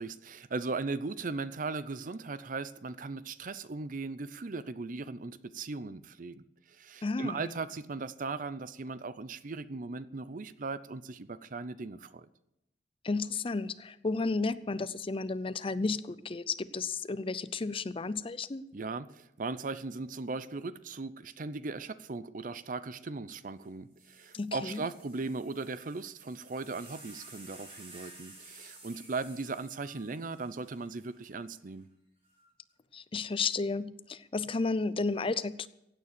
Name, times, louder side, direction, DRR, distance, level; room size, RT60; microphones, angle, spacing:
voice 1, 0.0-6.4 6.7-12.3 18.7-31.9, right 3 dB, 50° right, 15 dB, 0.6 m, -38 dB
voice 2, 7.0-7.5 13.0-18.6 24.3-24.8 32.9-35.7, left 3 dB, 30° left, 15 dB, 0.5 m, -33 dB
sound 1, 23.6-23.7 24.0-31.4 32.2-32.7, right 2 dB, 35° right, 5.0 m, -54 dB
16.0 x 9.1 x 6.8 m, 0.83 s
head